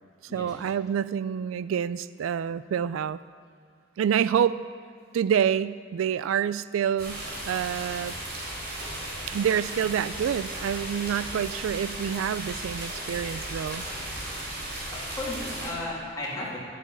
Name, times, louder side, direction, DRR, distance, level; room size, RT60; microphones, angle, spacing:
voice 1, 0.3-3.2 4.0-4.6 5.1-8.2 9.3-13.9, right 8 dB, 80° right, 16 dB, 0.3 m, -27 dB
sound 1, 7.0-15.7, right 1 dB, 55° right, 3.7 m, -36 dB
voice 2, 14.9-16.6, left 2 dB, 20° left, -6 dB, 3.0 m, -34 dB
12.0 x 8.0 x 7.3 m, 2.1 s
head